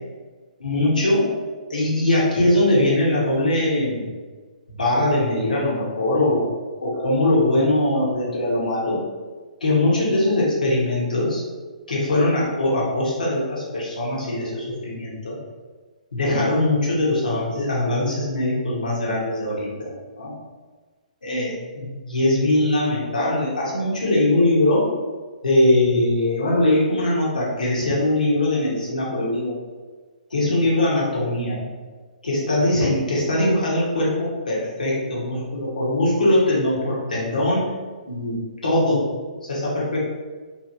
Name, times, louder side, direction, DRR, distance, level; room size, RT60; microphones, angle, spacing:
voice 1, 0.6-1.3 1.7-4.1 4.8-6.4 6.8-9.0 9.6-11.4 11.9-15.4 16.1-20.3 21.2-24.8 25.4-29.5 30.3-31.6 32.2-37.7 38.1-39.0 39.5-40.0, left 1 dB, 75° left, -6 dB, 1.1 m, -21 dB
2.9 x 2.7 x 2.6 m, 1.4 s
figure-of-eight pair, 125°, 4 cm